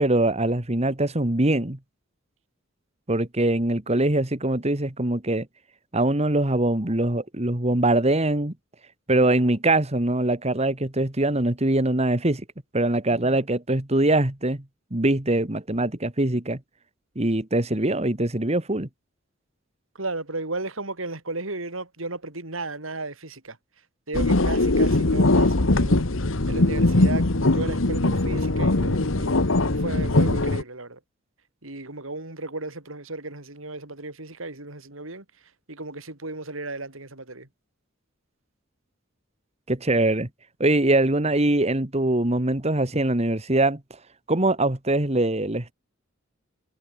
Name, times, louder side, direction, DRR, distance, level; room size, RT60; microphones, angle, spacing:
voice 1, 0.0-1.8 3.1-5.5 5.9-8.5 9.1-12.4 12.7-14.6 14.9-16.6 17.2-18.9 39.7-40.3 40.6-43.8 44.3-45.7, right 2 dB, 30° right, 1.9 m, -23 dB
voice 2, 19.9-23.6 24.1-26.0 26.5-31.0 31.6-35.2 35.7-37.5, right 2 dB, 90° right, 5.1 m, -34 dB
sound 1, 24.1-30.6, left 2 dB, 80° left, 1.6 m, -21 dB
head